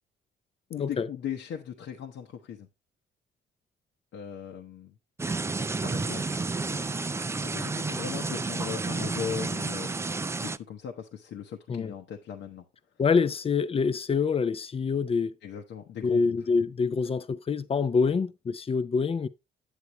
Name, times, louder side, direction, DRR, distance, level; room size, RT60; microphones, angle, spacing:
voice 1, 0.7-2.7 4.1-5.0 5.8-6.9 7.2-9.9 10.4-12.7 15.4-16.3 18.0-18.2, left 8 dB, 70° left, 1.0 m, -38 dB
sound 1, 5.2-10.6, right 3 dB, 15° right, 0.4 m, -31 dB
voice 2, 13.0-15.3 16.0-19.3, left 5 dB, 30° left, 0.6 m, -26 dB
8.3 x 8.3 x 3.0 m
cardioid pair, 90°, 20 cm